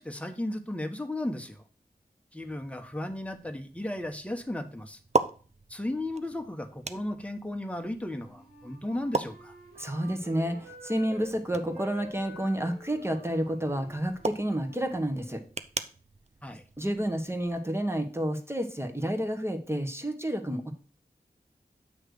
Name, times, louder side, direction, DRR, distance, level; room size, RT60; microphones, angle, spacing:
voice 1, 0.0-1.6 2.3-5.0 5.7-9.5 16.4-16.6, left 1 dB, 10° left, 5 dB, 1.1 m, -35 dB
sound 1, 2.4-17.6, right 3 dB, 45° right, 0.6 m, -39 dB
Wind instrument woodwind instrument, 8.1-11.3 11.6-15.4, right 1 dB, 80° right, 4.2 m, -50 dB
voice 2, 9.8-15.4 16.8-20.7, right 1 dB, 15° right, 4 dB, 1.4 m, -30 dB
8.1 x 3.2 x 6.4 m, 0.38 s
wide cardioid pair, 45°, 16 cm